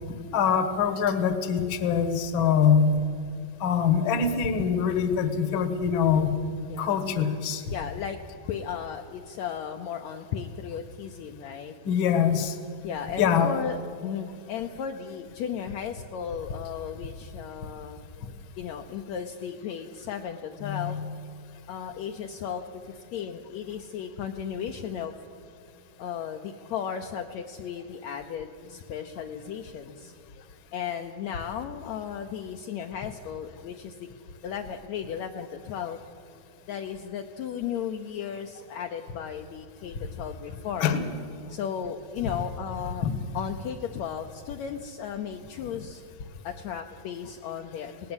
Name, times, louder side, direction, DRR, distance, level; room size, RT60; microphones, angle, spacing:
voice 1, 0.3-3.0 3.6-6.4 6.8-7.6 11.8-12.5 13.2-13.5 20.6-21.1 40.8-41.0 43.0-43.1, left 7 dB, 60° left, 9 dB, 1.3 m, -24 dB
voice 2, 6.7-7.1 7.7-8.2 8.5-11.7 12.8-18.0 18.6-21.0 21.7-25.1 26.0-30.1 30.7-34.1 34.4-36.0 36.7-41.0 41.5-43.1 43.3-46.0 46.4-48.1, left 8 dB, 85° left, 4 dB, 1.5 m, -35 dB
18.5 x 18.5 x 8.0 m, 2.4 s
omnidirectional pair, 4.2 m